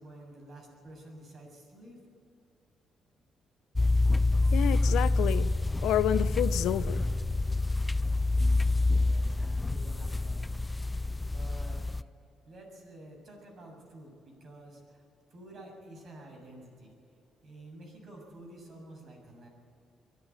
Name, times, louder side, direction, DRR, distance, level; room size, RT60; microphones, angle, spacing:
voice 1, 0.0-2.0 8.0-12.1 12.4-15.0 15.3-17.0 17.4-19.5, right 1 dB, 55° right, 1 dB, 7.2 m, -50 dB
sound 1, 3.8-12.0, left 2 dB, 15° left, 0.4 m, -27 dB
voice 2, 4.5-5.5 5.8-7.0, left 11 dB, 85° left, 15 dB, 0.6 m, -29 dB
23.5 x 11.5 x 9.6 m, 2.5 s
cardioid pair, 90°, 0 cm